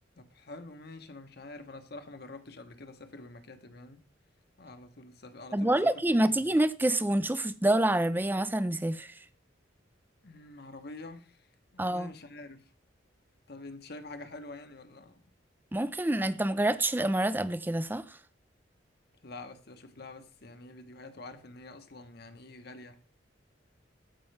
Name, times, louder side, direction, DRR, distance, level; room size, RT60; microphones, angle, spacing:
voice 1, 0.2-4.0 4.6-6.5 10.2-12.7 13.5-15.2 19.2-23.0, left 2 dB, 55° left, 1.1 m, -47 dB
voice 2, 5.5-9.1 11.8-12.1 15.7-18.0, right 1 dB, 10° right, 0.5 m, -27 dB
14.0 x 5.3 x 3.4 m
head